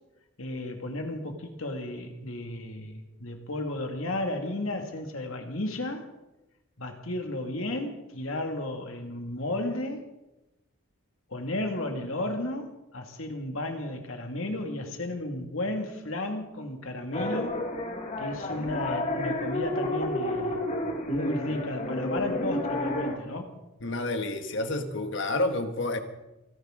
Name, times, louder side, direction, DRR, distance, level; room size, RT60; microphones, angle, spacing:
voice 1, 0.4-6.0 6.8-10.0 11.3-17.6 18.2-20.6 21.1-23.5, left 1 dB, 75° left, 4 dB, 2.3 m, -33 dB
sound 1, 17.1-23.2, left 1 dB, 35° left, 1.7 m, -31 dB
voice 2, 23.8-26.0, left 2 dB, 55° left, 7 dB, 1.5 m, -29 dB
29.5 x 10.5 x 3.8 m, 0.98 s
head